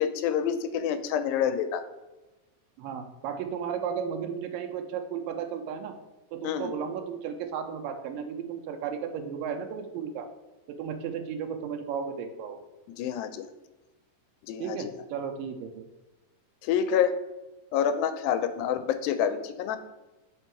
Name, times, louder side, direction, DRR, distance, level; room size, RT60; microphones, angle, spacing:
voice 1, 0.0-1.8 6.4-6.7 13.0-13.5 14.5-14.9 16.6-17.2 17.7-19.8, left 8 dB, 90° left, 10 dB, 2.3 m, -27 dB
voice 2, 2.8-5.9 6.3-10.3 10.7-12.6 14.6-15.8 18.6-18.7, right 7 dB, 85° right, 6 dB, 2.2 m, -34 dB
5.5 x 4.5 x 4.5 m, 1.1 s
omnidirectional pair, 4.0 m